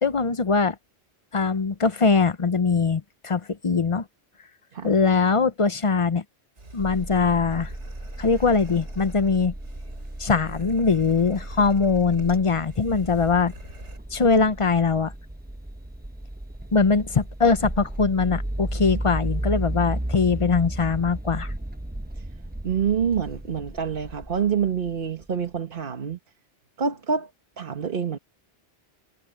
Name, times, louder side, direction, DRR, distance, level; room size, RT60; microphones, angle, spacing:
voice 1, 0.0-0.7 1.3-4.0 4.8-6.2 6.7-7.7 8.2-9.5 10.2-13.5 14.1-15.1 16.7-21.5, left 4 dB, 35° left, 0.6 m, -22 dB
sound 1, 6.6-14.0, right 2 dB, 70° right, 3.4 m, -46 dB
sound 2, 6.8-25.3, right 1 dB, 10° right, 0.8 m, -34 dB
voice 2, 22.6-26.2 26.8-27.3 27.6-28.2, right 7 dB, 50° right, 1.4 m, -26 dB
omnidirectional pair, 1.2 m